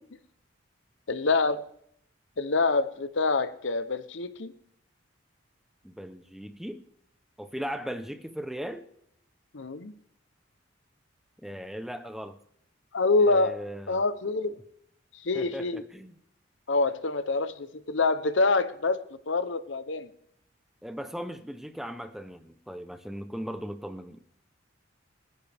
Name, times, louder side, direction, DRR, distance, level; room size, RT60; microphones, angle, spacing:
voice 1, 1.1-1.6 2.4-4.5 9.5-9.9 12.9-13.6 13.9-14.6 15.2-15.8 16.7-19.0 19.3-20.1, left 3 dB, 70° left, 13 dB, 0.8 m, -26 dB
voice 2, 5.8-6.8 7.4-8.9 11.4-12.4 13.2-14.0 15.3-16.1 20.8-24.2, equal, ahead, 9 dB, 0.7 m, -38 dB
28.5 x 10.0 x 3.5 m, 0.72 s
head